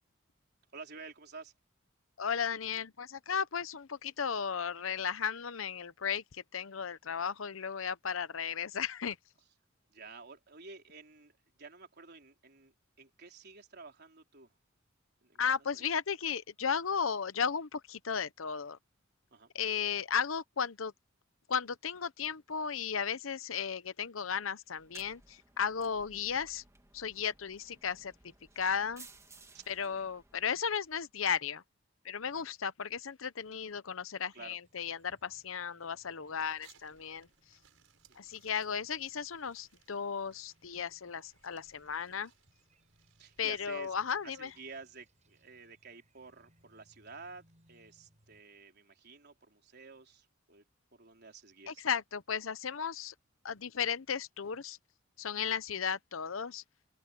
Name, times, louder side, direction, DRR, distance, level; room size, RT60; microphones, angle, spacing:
voice 1, 0.7-1.5 9.9-14.5 15.2-15.9 19.3-19.5 29.5-30.0 32.2-32.4 34.3-34.6 38.1-38.3 43.2-43.9 44.2-50.6 50.9-51.8 55.3-55.5, right 4 dB, 55° right, 4.0 m, -51 dB
voice 2, 2.2-9.2 15.4-18.8 19.5-20.9 21.5-26.6 26.9-28.1 28.6-29.1 29.7-31.6 32.0-37.3 38.2-42.3 43.4-44.5 51.7-53.1 53.4-54.8 55.2-56.6, left 7 dB, 90° left, 0.8 m, -35 dB
sound 1, 24.7-31.1, right 3 dB, 15° right, 1.6 m, -58 dB
sound 2, 34.6-48.4, right 1 dB, 35° right, 7.7 m, -70 dB
sound 3, 36.4-44.8, right 8 dB, 80° right, 5.9 m, -67 dB
open air
head